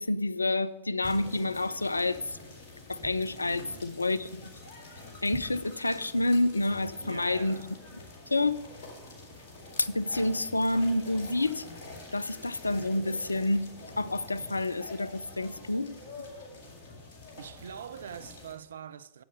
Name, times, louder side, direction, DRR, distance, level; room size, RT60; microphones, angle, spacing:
voice 1, 0.0-2.4 2.9-4.3 5.2-7.6 8.3-8.6 9.8-11.7 12.1-16.0, left 2 dB, 80° left, 0.3 m, -28 dB
sound 1, 1.0-18.5, left 2 dB, 50° left, 2.1 m, -47 dB
sound 2, 1.0-2.0 2.5-2.6 2.7-3.5 4.0-4.2 4.5-4.6 5.1-5.8 6.2-6.3, right 2 dB, 20° right, 2.4 m, -47 dB
voice 2, 3.5-3.9 7.0-7.7 17.4-19.2, right 8 dB, 65° right, 0.3 m, -44 dB
sound 3, 6.2-11.8, right 1 dB, 10° left, 3.6 m, -61 dB
10.5 x 7.4 x 5.4 m
figure-of-eight pair, 90°, 0 cm